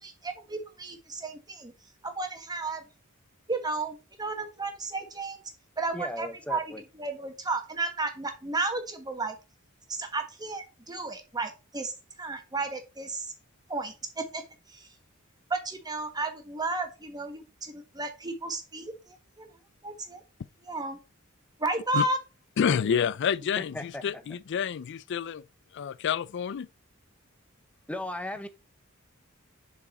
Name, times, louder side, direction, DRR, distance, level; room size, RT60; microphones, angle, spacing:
voice 1, 0.0-1.7 2.0-2.8 3.5-5.4 5.8-6.6 7.0-9.4 9.9-11.9 12.2-13.3 13.7-14.4 14.7-14.9 15.5-19.5 19.8-20.2 20.7-21.0 21.6-22.2, right 3 dB, 20° right, 1.4 m, -33 dB
voice 2, 5.9-6.8 23.6-24.0 27.9-28.5, left 1 dB, 5° left, 0.7 m, -36 dB
voice 3, 22.6-25.4 25.7-26.7, left 7 dB, 55° left, 0.4 m, -28 dB
6.8 x 4.7 x 4.2 m
head